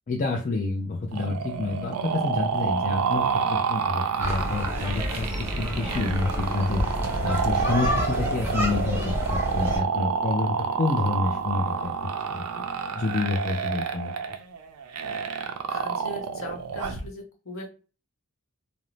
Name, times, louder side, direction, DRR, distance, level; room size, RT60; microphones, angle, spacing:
voice 1, 0.1-6.8 7.2-11.9 12.3-12.4 12.9-14.1, left 3 dB, 35° left, -1 dB, 0.4 m, -28 dB
sound 1, 1.1-17.1, right 6 dB, 90° right, 0.4 m, -29 dB
sound 2, 4.2-9.8, equal, 10° right, 0.6 m, -29 dB
voice 2, 15.7-17.8, equal, 60° left, 1 dB, 0.9 m, -39 dB
2.5 x 2.0 x 3.0 m, 0.35 s
head